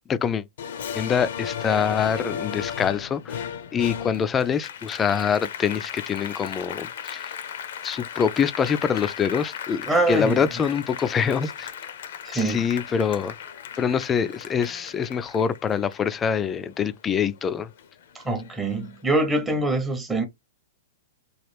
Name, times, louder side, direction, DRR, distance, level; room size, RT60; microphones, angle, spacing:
voice 1, 0.1-0.4 0.9-7.3 7.8-11.7 12.3-13.4 13.8-17.7, left 7 dB, 15° left, 0.3 m, -25 dB
Applause, 0.6-17.4 17.8-19.0, left 8 dB, 65° left, 0.5 m, -36 dB
voice 2, 9.9-10.4 12.2-12.6 18.1-20.3, right 2 dB, 10° right, 0.7 m, -24 dB
3.0 x 2.3 x 3.2 m
hypercardioid pair, 150°, 0 cm